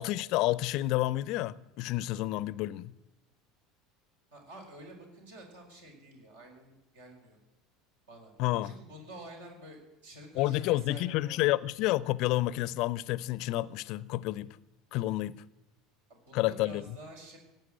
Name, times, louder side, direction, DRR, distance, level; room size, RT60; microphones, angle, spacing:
voice 1, 0.0-3.0 8.4-8.7 10.4-14.6 14.9-15.4 16.3-17.0, left 17 dB, 55° left, 0.5 m, -30 dB
voice 2, 4.3-7.4 8.1-8.3 8.6-11.4 16.1-17.4, right 1 dB, 70° right, 4.7 m, -49 dB
17.0 x 8.7 x 8.8 m
figure-of-eight pair, 70°, 0 cm